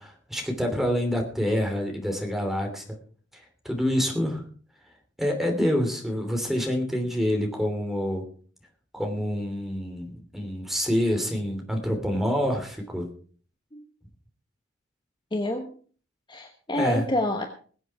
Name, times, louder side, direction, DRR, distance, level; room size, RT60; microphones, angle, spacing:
voice 1, 0.0-2.8 3.6-4.4 5.2-8.3 8.9-13.1 16.7-17.0, equal, ahead, 3 dB, 3.0 m, -27 dB
voice 2, 15.3-15.7 16.3-17.5, left 1 dB, 25° left, 5 dB, 1.2 m, -27 dB
21.0 x 8.0 x 4.8 m, 0.43 s
head